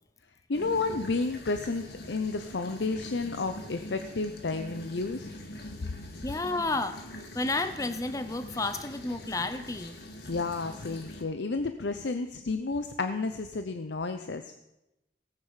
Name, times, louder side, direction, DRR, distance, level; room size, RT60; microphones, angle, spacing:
voice 1, 0.5-5.3 10.3-14.5, left 3 dB, 80° left, 8 dB, 0.7 m, -31 dB
sound 1, 0.5-11.2, left 1 dB, 60° left, 1.7 m, -44 dB
voice 2, 6.2-10.0, left 2 dB, 20° left, 10 dB, 0.6 m, -31 dB
17.0 x 9.1 x 5.7 m, 0.90 s
head